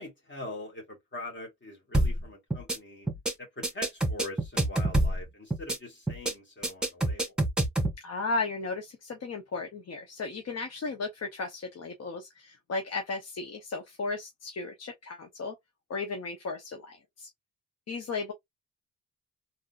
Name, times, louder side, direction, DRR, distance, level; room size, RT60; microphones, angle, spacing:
voice 1, 0.0-3.1 3.4-7.3, left 1 dB, 35° left, 1.7 m, -43 dB
sound 1, 1.9-2.2 2.5-2.8 3.1-3.3 3.6-5.2 5.5-5.8 6.1-6.3 6.6-7.9, right 1 dB, 5° right, 1.7 m, -26 dB
voice 2, 8.0-15.5 15.9-17.3 17.9-18.3, left 3 dB, 55° left, 0.9 m, -35 dB
3.7 x 2.7 x 2.5 m
cardioid pair, 65°, 31 cm